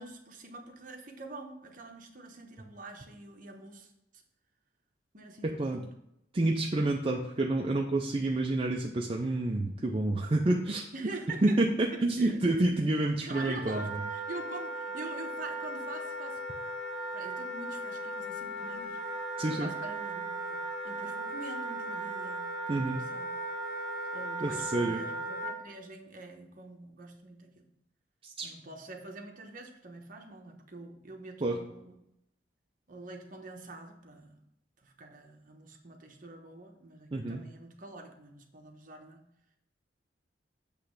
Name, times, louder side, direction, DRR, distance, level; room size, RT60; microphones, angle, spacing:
voice 1, 0.0-4.2 5.1-5.9 10.9-11.6 11.9-12.7 13.2-16.6 17.1-19.0 19.4-23.3 24.1-27.6 28.4-32.0 32.9-34.4 34.8-39.2, right 2 dB, 45° right, 3 dB, 1.1 m, -45 dB
voice 2, 5.4-5.8 6.3-10.8 11.4-14.0 19.4-19.7 22.7-23.0 24.4-25.0 28.2-28.5 31.4-31.6 37.1-37.4, right 2 dB, 30° right, 0 dB, 0.5 m, -28 dB
Wind instrument woodwind instrument, 13.3-25.5, right 1 dB, ahead, 2.2 m, -37 dB
8.2 x 3.2 x 6.4 m, 0.81 s
head